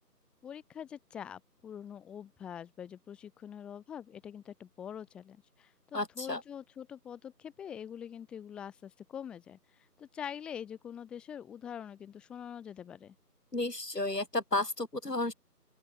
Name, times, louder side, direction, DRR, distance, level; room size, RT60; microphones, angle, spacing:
voice 1, 0.4-9.6 10.0-13.2, left 8 dB, ahead, 6.2 m, -44 dB
voice 2, 5.9-6.4 13.5-15.3, left 2 dB, 75° left, 6.2 m, -32 dB
open air
figure-of-eight pair, 170°, 49 cm